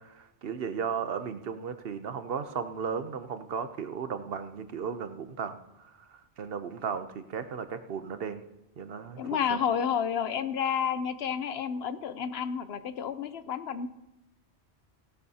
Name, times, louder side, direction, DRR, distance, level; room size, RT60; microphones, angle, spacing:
voice 1, 0.0-8.4 8.8-9.6, right 6 dB, 60° right, 10 dB, 0.9 m, -35 dB
voice 2, 9.2-13.9, left 7 dB, 65° left, 12 dB, 0.8 m, -30 dB
17.0 x 12.0 x 2.8 m, 0.89 s
omnidirectional pair, 1.2 m